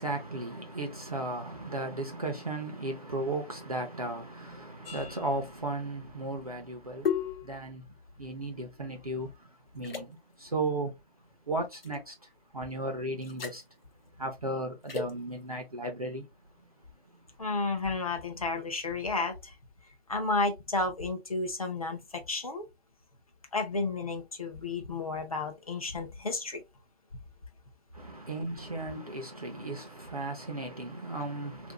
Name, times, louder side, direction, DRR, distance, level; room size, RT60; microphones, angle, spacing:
voice 1, 0.0-7.1 7.4-7.8 8.2-9.3 9.7-10.1 10.4-10.9 11.5-12.1 12.5-13.6 14.2-16.2 28.0-31.7, right 2 dB, 35° right, 0.5 m, -35 dB
sound 1, 4.8-9.4 9.8-10.0 11.7-12.0 13.2-13.6 14.9-15.1, left 7 dB, 65° left, 0.8 m, -37 dB
voice 2, 17.4-19.5 20.1-22.7 23.5-26.6, left 3 dB, 35° left, 0.6 m, -32 dB
2.9 x 2.6 x 2.9 m
hypercardioid pair, 170°, 31 cm